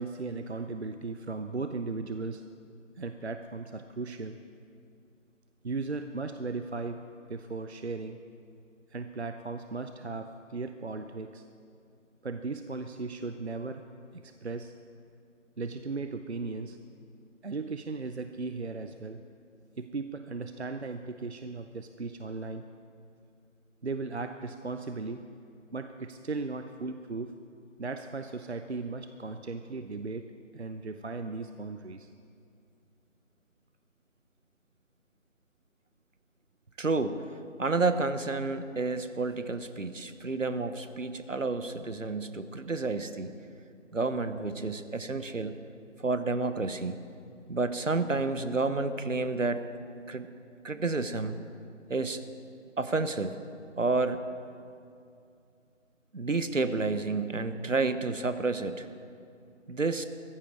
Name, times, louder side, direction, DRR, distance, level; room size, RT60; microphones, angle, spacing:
voice 1, 0.0-2.4 3.0-4.4 5.6-7.0 7.3-8.2 8.9-11.4 12.2-13.8 14.1-14.7 15.6-16.8 17.4-19.2 19.8-22.7 23.8-25.2 25.7-27.3 27.8-32.1, right 3 dB, 55° right, 8 dB, 0.6 m, -37 dB
voice 2, 36.8-37.2 37.6-43.3 43.9-45.6 46.0-47.0 47.5-49.6 50.1-50.3 50.6-51.4 51.9-52.2 52.8-53.4 53.8-54.2 56.1-58.9 59.7-60.1, right 3 dB, 75° right, 11 dB, 1.0 m, -30 dB
16.0 x 14.5 x 4.6 m, 2.5 s
figure-of-eight pair, 165°, 39 cm